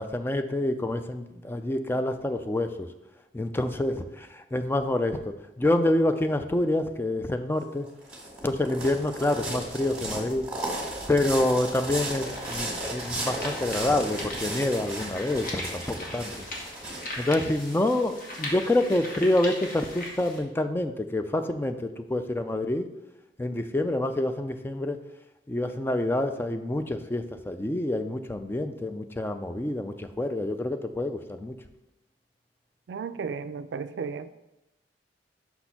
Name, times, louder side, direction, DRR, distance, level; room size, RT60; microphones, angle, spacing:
voice 1, 0.0-2.9 3.3-7.9 8.4-10.5 11.1-16.3 17.2-22.9 23.4-25.0 25.5-31.6, left 1 dB, 15° left, 8 dB, 0.3 m, -27 dB
sound 1, 7.6-18.4, right 1 dB, 5° right, 1.6 m, -35 dB
sound 2, 12.1-20.4, left 1 dB, 50° left, 1.5 m, -39 dB
voice 2, 32.9-34.3, right 5 dB, 80° right, 13 dB, 0.3 m, -34 dB
5.7 x 4.2 x 5.8 m, 0.97 s
head